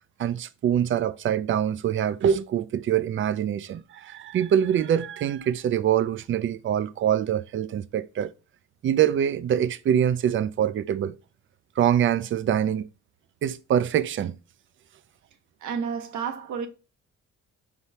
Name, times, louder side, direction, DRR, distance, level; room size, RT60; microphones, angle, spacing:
voice 1, 0.2-8.3 8.8-11.2 11.8-12.9 13.4-14.3, right 9 dB, 45° right, 0.4 m, -24 dB
voice 2, 15.6-16.7, right 6 dB, 75° right, 0.8 m, -30 dB
4.4 x 3.5 x 2.8 m
cardioid pair, 90°, 30 cm